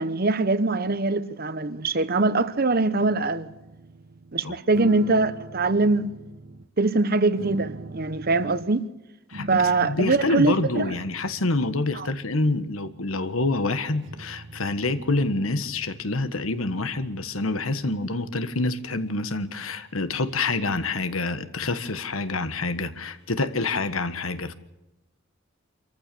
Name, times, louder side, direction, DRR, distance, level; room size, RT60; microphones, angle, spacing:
voice 1, 0.0-3.5 4.3-6.1 6.8-8.9 9.5-10.9 12.0-12.1, right 3 dB, 50° right, 1.1 m, -23 dB
sound 1, 1.7-2.6 3.0-4.3 4.7-6.7 7.4-8.8 9.3-13.3 14.0-20.5, right 1 dB, 65° right, 1.4 m, -43 dB
voice 2, 9.3-24.5, left 2 dB, 90° left, 1.5 m, -27 dB
25.5 x 14.5 x 6.9 m
head